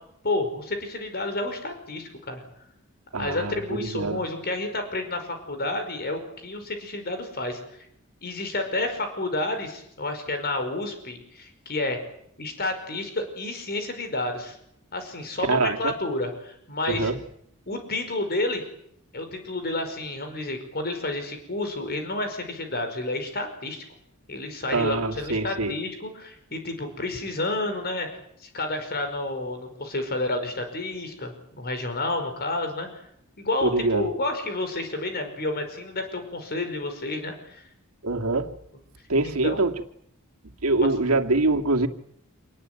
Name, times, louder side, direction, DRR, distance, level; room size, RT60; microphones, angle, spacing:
voice 1, 0.2-2.4 3.2-7.9 8.2-12.0 12.4-14.6 14.9-17.1 17.7-18.6 19.1-23.8 24.3-28.1 28.4-33.0 33.4-37.6 39.2-39.6, left 2 dB, 45° left, 7 dB, 5.2 m, -30 dB
voice 2, 3.1-4.2 15.5-15.9 16.9-17.2 24.7-25.7 33.6-34.1 38.0-38.5 39.1-39.7 40.6-41.9, right 3 dB, 85° right, 5 dB, 2.6 m, -24 dB
27.5 x 20.0 x 9.3 m, 0.72 s
head